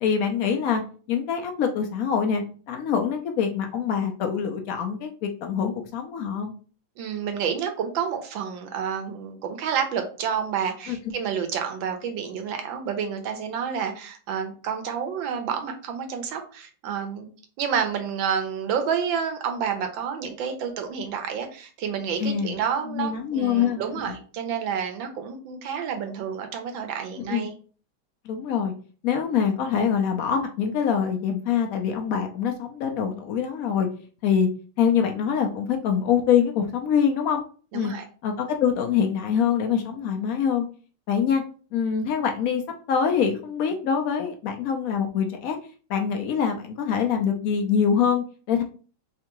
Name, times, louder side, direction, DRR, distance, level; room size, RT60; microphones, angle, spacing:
voice 1, 0.0-0.8 1.1-6.5 10.9-11.0 22.2-22.6 22.9-23.8 27.3-27.5 28.2-28.7 29.0-33.9 34.2-34.5 34.8-37.4 37.7-37.9 38.2-40.7 41.1-41.4 41.7-42.6 42.9-45.6 45.9-48.6, left 7 dB, 80° left, 4 dB, 0.7 m, -24 dB
voice 2, 7.0-17.3 17.6-27.5 37.7-38.1, right 7 dB, 75° right, 5 dB, 1.4 m, -29 dB
3.6 x 3.3 x 2.9 m, 0.40 s
omnidirectional pair, 2.1 m